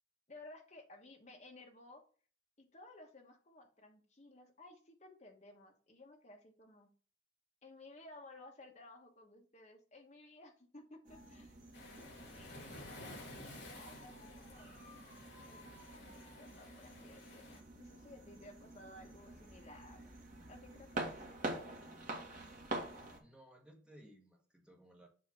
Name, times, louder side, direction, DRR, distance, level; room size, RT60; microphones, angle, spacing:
voice 1, 0.3-2.0 2.6-6.9 7.6-11.6 12.3-12.9 13.4-14.8 15.5-20.1 20.5-21.8, left 2 dB, 35° left, 3 dB, 1.2 m, -57 dB
sound 1, 11.0-23.2, right 1 dB, 40° right, 1.6 m, -47 dB
Waves surf, 11.7-17.6, left 2 dB, 60° left, 3.6 m, -53 dB
voice 2, 23.2-25.1, right 1 dB, 5° right, 1 dB, 1.3 m, -60 dB
7.4 x 2.9 x 5.8 m, 0.41 s
head